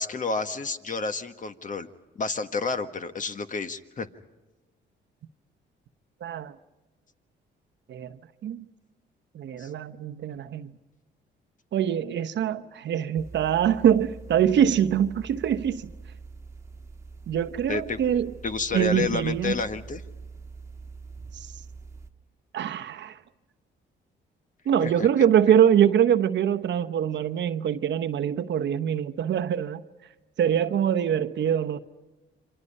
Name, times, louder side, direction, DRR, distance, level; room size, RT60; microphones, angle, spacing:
voice 1, 0.0-1.9 2.2-4.1 9.6-9.7 17.7-18.0 18.4-20.0 24.8-24.9, left 4 dB, 40° left, 1.5 m, -30 dB
voice 2, 6.2-6.5 7.9-8.6 9.3-10.7 11.7-15.9 17.3-18.3 18.7-19.5 21.3-21.5 22.5-23.2 24.7-29.8 30.4-31.8, right 9 dB, 65° right, 1.0 m, -24 dB
sound 1, 13.2-22.1, right 4 dB, 15° right, 1.6 m, -44 dB
28.5 x 25.0 x 5.5 m
cardioid pair, 90°, 20 cm